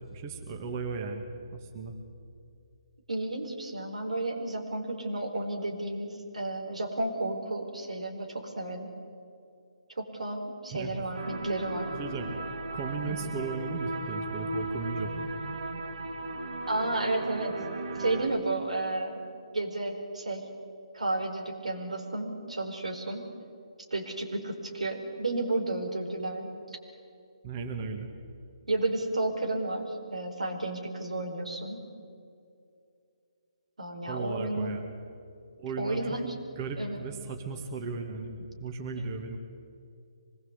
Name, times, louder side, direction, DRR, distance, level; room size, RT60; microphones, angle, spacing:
voice 1, 0.0-1.4 1.6-1.9 10.7-11.0 11.9-15.3 27.4-28.1 34.1-34.9 35.6-36.0 36.6-39.4, right 4 dB, 30° right, 4 dB, 2.0 m, -36 dB
voice 2, 3.1-8.9 10.0-11.9 13.0-13.1 16.7-17.5 18.0-19.3 19.5-20.4 20.9-23.2 23.9-26.5 28.7-31.8 33.8-34.7 35.8-36.4 36.8-37.0, right 2 dB, 90° right, 3 dB, 4.6 m, -32 dB
sound 1, 11.1-18.3, right 2 dB, 70° right, 2.5 m, -36 dB
25.0 x 20.5 x 8.2 m, 2.5 s
hypercardioid pair, 155°, 4 cm